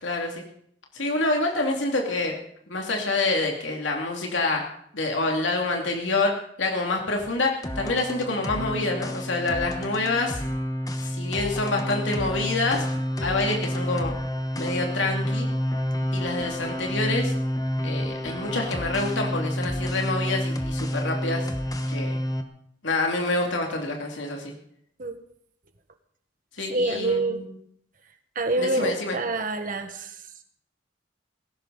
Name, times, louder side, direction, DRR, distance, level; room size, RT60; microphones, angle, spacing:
voice 1, 0.0-0.4 0.9-2.4 2.7-4.7 4.9-10.4 11.0-12.8 13.2-14.1 14.6-15.5 16.1-17.3 17.8-21.5 21.9-22.2 22.8-24.5 26.6-27.6 28.6-29.2, left 2 dB, 80° left, 1 dB, 2.6 m, -27 dB
sound 1, 7.6-22.4, equal, 20° left, 1.2 m, -29 dB
voice 2, 26.7-27.4 28.3-30.1, right 2 dB, 45° right, 6 dB, 1.6 m, -26 dB
18.0 x 16.0 x 4.1 m, 0.70 s
head